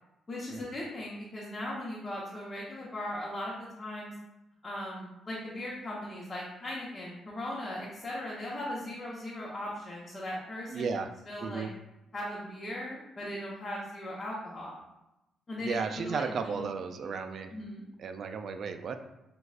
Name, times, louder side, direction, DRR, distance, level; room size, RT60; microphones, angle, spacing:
voice 1, 0.3-4.1 4.6-10.9 11.3-11.7 12.1-14.8 15.5-16.6 16.9-17.1 17.5-17.8, left 1 dB, 25° left, -6 dB, 0.9 m, -38 dB
voice 2, 10.7-11.1 11.4-11.7 15.6-17.5 18.0-19.0, right 5 dB, 60° right, 8 dB, 0.3 m, -34 dB
6.2 x 2.4 x 2.4 m, 0.92 s
cardioid pair, 90°, 0 cm